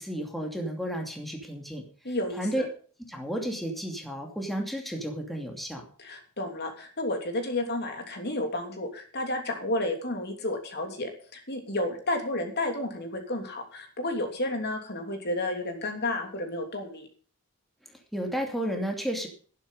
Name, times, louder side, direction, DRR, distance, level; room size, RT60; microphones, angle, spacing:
voice 1, 0.0-1.8 2.4-2.6 3.1-5.8 18.1-19.3, equal, ahead, 1 dB, 2.6 m, -32 dB
voice 2, 2.0-2.7 6.0-17.1, left 1 dB, 50° left, 4 dB, 3.1 m, -31 dB
12.0 x 11.5 x 5.4 m, 0.42 s
head